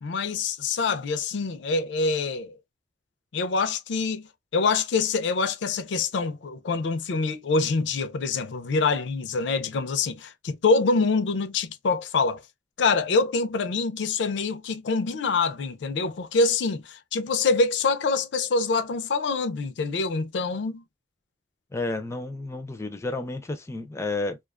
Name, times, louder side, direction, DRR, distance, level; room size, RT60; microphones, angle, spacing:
voice 1, 0.0-2.6 3.3-4.3 4.5-12.4 12.8-20.8, left 4 dB, 85° left, 0.4 m, -25 dB
voice 2, 21.7-24.4, left 2 dB, 15° left, 0.4 m, -31 dB
2.3 x 2.3 x 2.3 m
head